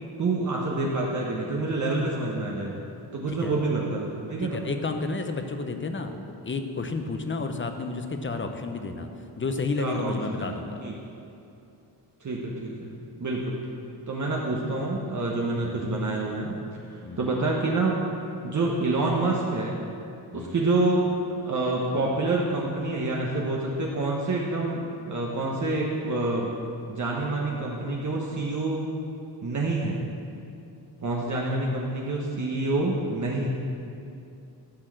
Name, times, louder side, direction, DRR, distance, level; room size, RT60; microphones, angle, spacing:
voice 1, 0.2-2.8 3.1-4.6 9.8-10.9 12.2-12.9 13.2-13.6 14.1-16.5 16.9-18.0 18.4-19.8 20.3-21.1 21.4-26.5 26.9-28.9 29.4-30.0 31.0-33.5, right 2 dB, 40° right, -3 dB, 1.2 m, -27 dB
voice 2, 4.4-9.1 9.4-10.8 15.6-15.9 17.0-17.4 20.3-20.6, left 3 dB, 25° left, 6 dB, 0.8 m, -31 dB
13.0 x 4.6 x 7.6 m, 2.7 s
cardioid pair, 100°, 44 cm